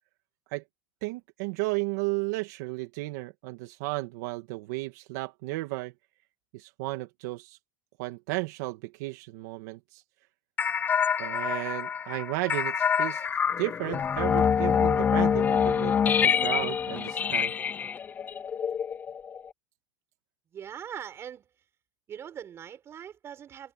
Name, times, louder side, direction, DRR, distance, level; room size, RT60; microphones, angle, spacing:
voice 1, 1.0-5.9 6.5-7.6 8.0-10.0 11.2-13.3 13.6-17.5, right 22 dB, 60° right, 2.3 m, -34 dB
sound 1, 10.6-19.5, left 7 dB, 15° left, 0.5 m, -26 dB
voice 2, 20.5-21.5 22.1-23.7, right 9 dB, 25° right, 6.2 m, -41 dB
supercardioid pair, 150°, 10 cm